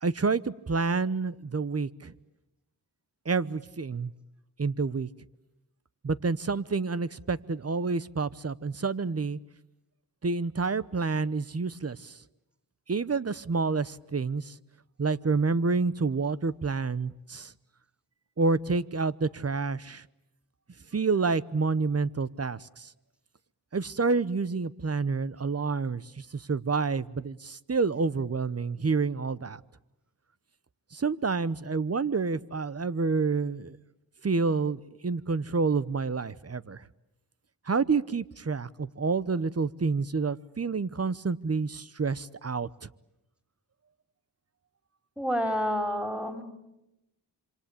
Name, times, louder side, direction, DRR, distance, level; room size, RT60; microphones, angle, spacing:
voice 1, 0.0-2.1 3.2-4.1 4.6-5.1 6.0-9.4 10.2-12.2 12.9-14.5 15.0-17.5 18.4-20.0 20.9-22.9 23.7-29.6 30.9-33.8 34.2-36.8 37.7-42.9, right 4 dB, 35° right, 17 dB, 0.9 m, -28 dB
voice 2, 45.2-46.4, equal, ahead, 7 dB, 3.8 m, -29 dB
26.5 x 25.0 x 8.5 m, 0.90 s
cardioid pair, 60°, 43 cm